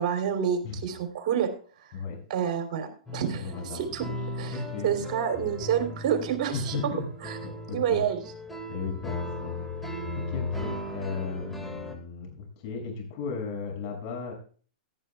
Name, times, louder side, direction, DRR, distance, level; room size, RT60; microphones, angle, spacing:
voice 1, 0.0-1.5 1.8-2.0 2.3-4.1 4.3-6.9 7.2-7.4 7.7-8.2, right 8 dB, 50° right, 5 dB, 3.2 m, -28 dB
sound 1, 3.1-12.0, left 1 dB, ahead, 2.0 m, -37 dB
voice 2, 3.3-3.8 4.5-4.9 6.5-8.0 8.7-14.3, left 5 dB, 45° left, 2 dB, 6.5 m, -36 dB
17.0 x 11.0 x 2.4 m, 0.42 s
hypercardioid pair, 120°, 4 cm